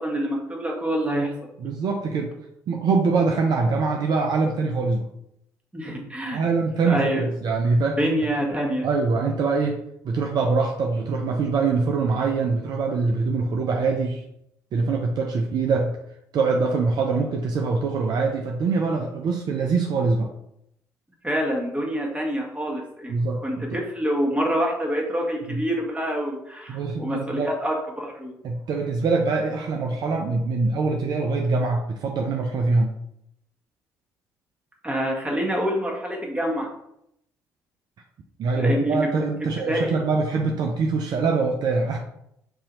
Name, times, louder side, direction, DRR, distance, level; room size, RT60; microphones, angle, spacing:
voice 1, 0.0-1.3 5.7-6.4 6.9-7.3 8.0-8.9 21.2-23.2 23.4-28.3 34.8-36.7 38.5-39.0 39.6-40.0, equal, 15° right, -1 dB, 1.1 m, -26 dB
voice 2, 1.6-2.3 2.7-5.1 6.3-8.0 8.8-14.2 14.7-15.9 16.3-20.3 23.1-23.8 25.5-25.6 26.7-27.5 28.4-32.9 38.4-42.0, right 4 dB, 50° right, 2 dB, 0.4 m, -24 dB
3.8 x 2.7 x 3.0 m, 0.77 s
figure-of-eight pair, 45°, 9 cm